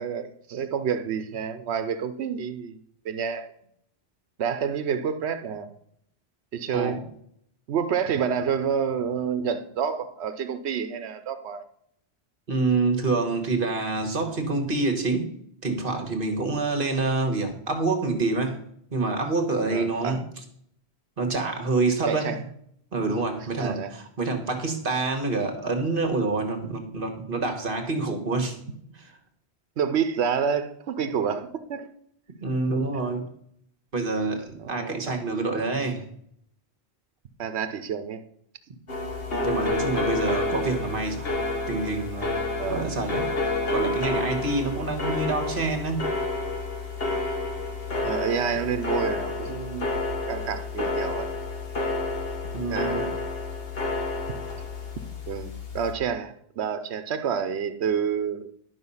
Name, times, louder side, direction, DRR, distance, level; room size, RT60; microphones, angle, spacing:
voice 1, 0.0-2.8 3.0-3.5 4.4-5.7 6.5-7.0 7.7-11.6 19.7-20.2 22.1-22.4 23.6-23.9 29.8-31.9 34.7-35.2 37.4-38.2 42.6-42.9 48.0-49.9 50.3-51.3 52.7-53.2 55.3-58.5, right 7 dB, 85° right, 10 dB, 1.0 m, -28 dB
voice 2, 12.5-15.3 15.6-18.6 18.9-20.2 21.2-22.3 22.9-28.6 32.4-33.2 33.9-36.0 39.4-41.3 41.7-42.4 42.7-43.3 43.7-46.1 52.5-53.1, right 3 dB, 55° right, 5 dB, 1.5 m, -27 dB
sound 1, 38.9-55.9, left 2 dB, 65° left, 1.6 m, -29 dB
11.5 x 5.5 x 5.5 m, 0.68 s
omnidirectional pair, 1.1 m